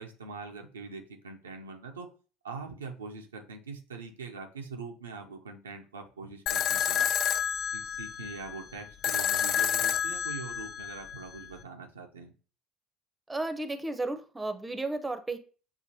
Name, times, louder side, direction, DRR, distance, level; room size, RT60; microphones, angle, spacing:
voice 1, 0.0-2.1 2.4-7.1 7.7-12.3, right 4 dB, 90° right, 3 dB, 0.6 m, -43 dB
sound 1, 6.5-11.5, left 9 dB, 50° left, 0.4 m, -30 dB
voice 2, 13.3-15.4, right 2 dB, 15° right, 8 dB, 0.6 m, -33 dB
6.7 x 2.5 x 2.7 m, 0.37 s
hypercardioid pair, 65°, 0 cm